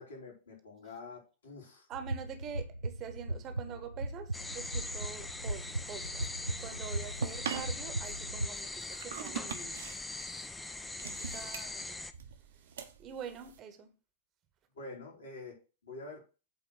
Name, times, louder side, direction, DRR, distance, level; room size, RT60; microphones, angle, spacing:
voice 1, 0.0-1.9 10.8-11.4 11.9-12.0 14.7-16.2, left 3 dB, 70° left, 4.8 m, -48 dB
voice 2, 1.9-9.8 11.0-12.0 13.0-13.9, right 7 dB, 35° right, 1.3 m, -45 dB
sound 1, 1.9-8.5, right 2 dB, 80° right, 0.5 m, -38 dB
sound 2, 4.3-12.1, left 2 dB, 10° left, 0.7 m, -42 dB
sound 3, 5.9-13.6, right 7 dB, 60° right, 1.2 m, -44 dB
8.3 x 4.3 x 6.3 m
figure-of-eight pair, 90°, 0 cm